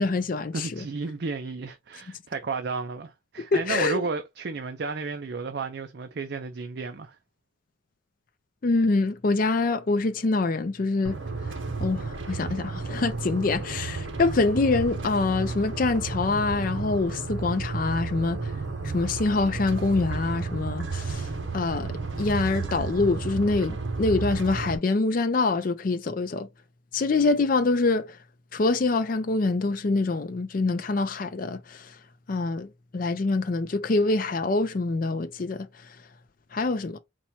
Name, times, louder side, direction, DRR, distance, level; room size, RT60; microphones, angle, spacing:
voice 1, 0.0-0.8 3.4-4.0 8.6-11.2 11.8-18.5 18.8-21.3 21.5-26.5 26.9-28.2 28.5-31.9 32.3-32.7 32.9-35.7 36.5-37.0, left 3 dB, 45° left, 0.4 m, -25 dB
voice 2, 0.5-7.2, right 4 dB, 55° right, 0.5 m, -32 dB
sound 1, 11.0-24.8, right 4 dB, 75° right, 0.9 m, -32 dB
4.2 x 2.2 x 4.3 m
head